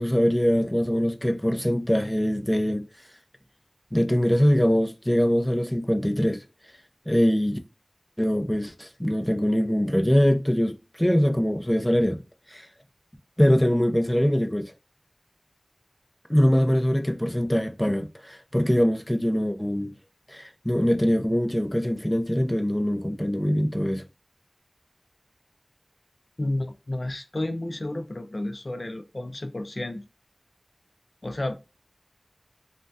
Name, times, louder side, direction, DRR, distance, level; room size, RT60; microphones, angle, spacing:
voice 1, 0.0-2.8 3.9-6.4 7.1-7.6 8.2-12.2 12.5-12.7 13.4-14.7 16.3-19.9 20.3-24.0, equal, 10° left, 0.5 m, -23 dB
voice 2, 26.4-30.0 31.2-31.5, left 1 dB, 65° left, 0.5 m, -31 dB
3.3 x 2.2 x 2.6 m
wide cardioid pair, 40°, 0 cm